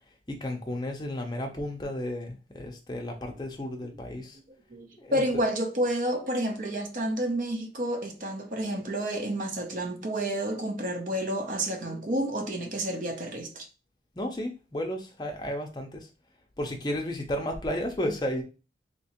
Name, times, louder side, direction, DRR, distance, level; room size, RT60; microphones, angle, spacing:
voice 1, 0.3-4.4 5.0-5.2 14.2-16.1 16.6-18.4, left 1 dB, 25° left, 0.6 m, -33 dB
voice 2, 4.7-13.7, right 1 dB, 45° right, 0.6 m, -30 dB
3.2 x 2.9 x 2.9 m
head